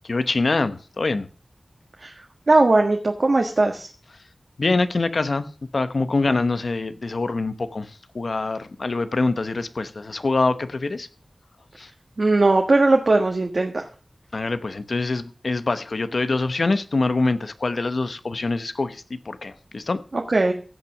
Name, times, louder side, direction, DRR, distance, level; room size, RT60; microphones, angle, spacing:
voice 1, 0.0-1.3 4.6-11.1 11.8-11.9 14.3-20.0, left 3 dB, 75° left, 1.0 m, -24 dB
voice 2, 2.5-3.9 12.2-13.8 20.1-20.5, right 2 dB, 60° right, 1.5 m, -19 dB
16.0 x 6.0 x 5.9 m
wide cardioid pair, 70°, 0 cm